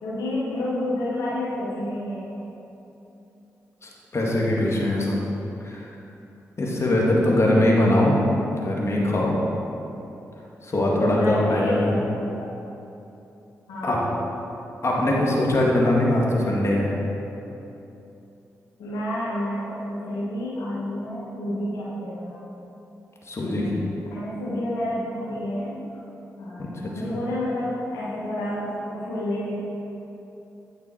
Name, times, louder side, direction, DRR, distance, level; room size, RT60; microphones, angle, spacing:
voice 1, 0.0-2.4 7.4-7.9 11.1-12.3 13.7-14.2 18.8-22.5 23.4-25.9 26.4-29.5, left 1 dB, 85° left, -7 dB, 1.3 m, -30 dB
voice 2, 3.8-5.2 5.6-5.9 6.6-8.2 8.5-9.4 10.6-11.9 13.8-14.0 14.8-16.9 23.3-23.8 26.6-26.7 27.0-27.1, left 1 dB, 45° left, -3 dB, 1.8 m, -21 dB
8.8 x 6.1 x 4.4 m, 3.0 s
supercardioid pair, 40°, 7 cm